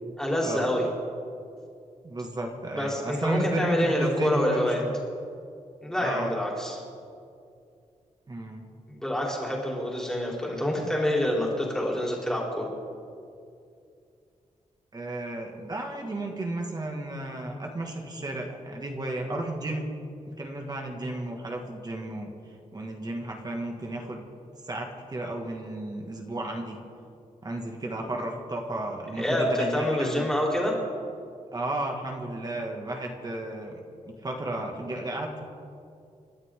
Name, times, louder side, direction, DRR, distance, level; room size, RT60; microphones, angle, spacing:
voice 1, 0.2-0.9 2.7-4.8 5.8-6.8 8.9-12.7 29.2-30.7, left 1 dB, 5° left, -3 dB, 3.9 m, -27 dB
voice 2, 2.0-5.0 6.0-6.3 8.3-8.7 14.9-19.9 20.4-22.3 22.7-24.3 24.7-26.8 27.4-30.3 31.5-33.8 34.2-35.4, right 2 dB, 30° right, 1 dB, 2.1 m, -33 dB
29.5 x 12.5 x 3.8 m, 2.4 s
wide cardioid pair, 140°, 13 cm